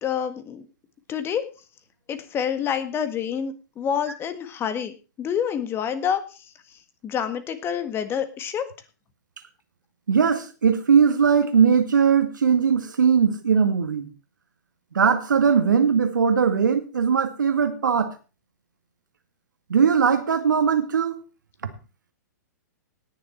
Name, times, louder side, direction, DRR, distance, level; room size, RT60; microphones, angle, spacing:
voice 1, 0.0-0.6 1.1-1.5 2.1-6.5 7.0-8.7, left 8 dB, 25° left, 1.8 m, -27 dB
voice 2, 10.1-14.1 14.9-18.1 19.7-21.2, right 6 dB, 90° right, 2.2 m, -20 dB
19.0 x 7.0 x 4.4 m
hypercardioid pair, 130°, 10 cm